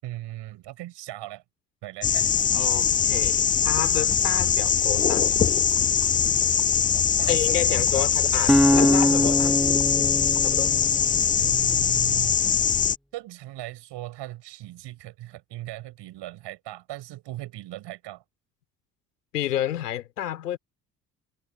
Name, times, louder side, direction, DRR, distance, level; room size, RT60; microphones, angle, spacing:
voice 1, 0.0-1.4 1.8-2.3 6.9-8.1 11.4-12.4 13.1-18.2, right 16 dB, 60° right, 6.2 m, -38 dB
sound 1, 2.0-13.0, left 8 dB, 20° left, 0.4 m, -22 dB
voice 2, 2.5-5.3 7.3-9.6 9.9-10.2 10.4-10.8 19.3-20.6, left 11 dB, 80° left, 4.0 m, -30 dB
sound 2, 8.5-11.7, equal, ahead, 2.2 m, -23 dB
figure-of-eight pair, 50°, 46 cm